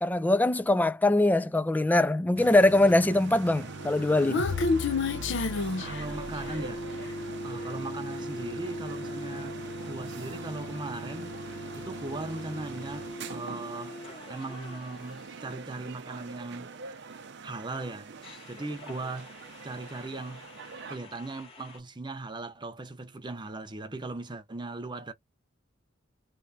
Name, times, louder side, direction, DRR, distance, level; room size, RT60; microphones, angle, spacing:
voice 1, 0.0-4.4, left 2 dB, 10° left, 0.3 m, -22 dB
sound 1, 2.4-21.0, right 4 dB, 60° right, 0.6 m, -42 dB
Human voice, 3.7-6.7, left 4 dB, 65° left, 0.5 m, -30 dB
sound 2, 4.5-15.4 18.2-21.8, left 1 dB, 30° left, 1.8 m, -42 dB
voice 2, 5.8-6.8 7.4-14.0 14.3-17.0 17.4-18.1 18.5-19.3 19.6-20.4 20.9-25.1, right 2 dB, 25° right, 0.7 m, -38 dB
3.3 x 3.0 x 2.8 m
head